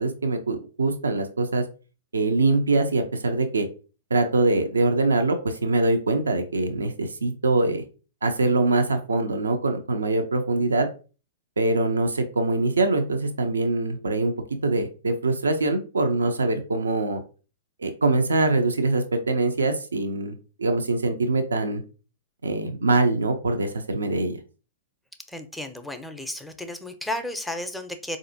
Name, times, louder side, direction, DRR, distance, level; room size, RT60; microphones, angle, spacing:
voice 1, 0.0-1.6 2.1-3.7 4.1-7.8 8.2-10.9 11.6-14.3 14.6-17.2 17.8-21.8 22.4-24.4, right 2 dB, 85° right, 6 dB, 0.5 m, -23 dB
voice 2, 25.3-28.2, left 1 dB, ahead, 6 dB, 0.5 m, -33 dB
4.1 x 2.5 x 2.6 m, 0.35 s
hypercardioid pair, 110°, 0 cm